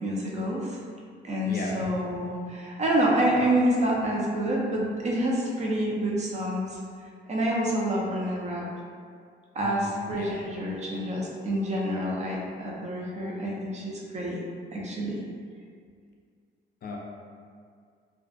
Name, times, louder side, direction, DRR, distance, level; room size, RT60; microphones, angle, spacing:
voice 1, 0.0-0.8 1.2-6.8 7.3-8.7 9.5-14.4 14.7-15.2, right 1 dB, 35° right, -3 dB, 0.5 m, -27 dB
voice 2, 1.5-1.8 9.6-10.4 16.8-17.0, left 3 dB, 50° left, -1 dB, 0.4 m, -36 dB
2.5 x 2.1 x 2.5 m, 2.1 s
cardioid pair, 90°, 20 cm